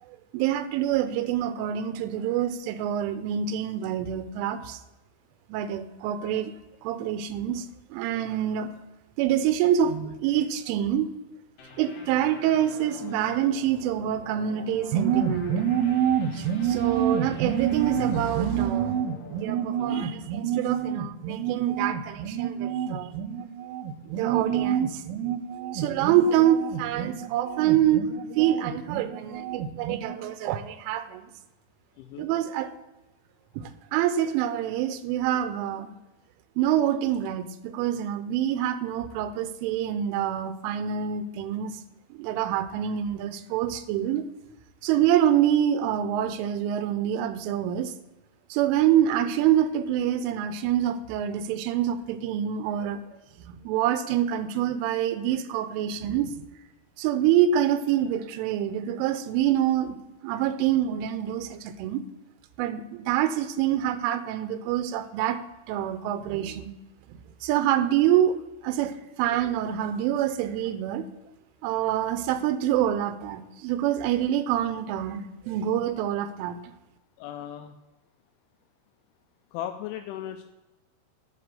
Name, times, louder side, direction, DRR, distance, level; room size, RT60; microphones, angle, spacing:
voice 1, 0.3-4.8 5.5-6.5 6.8-8.7 9.2-11.1 11.8-31.3 32.2-32.7 33.6-35.9 36.6-41.7 42.1-44.2 44.8-47.9 48.5-53.0 53.5-56.3 57.0-60.0 60.2-62.0 62.6-65.4 65.7-66.7 67.4-68.4 68.6-68.9 69.2-71.1 71.6-76.6, right 10 dB, 90° right, 11 dB, 3.2 m, -26 dB
sound 1, 11.6-20.9, left 4 dB, 65° left, 2.4 m, -47 dB
voice 2, 19.8-20.1 32.0-32.3 77.2-77.7 79.5-80.4, left 11 dB, 85° left, 7 dB, 2.9 m, -37 dB
10.0 x 4.3 x 6.7 m, 1.0 s
omnidirectional pair, 5.5 m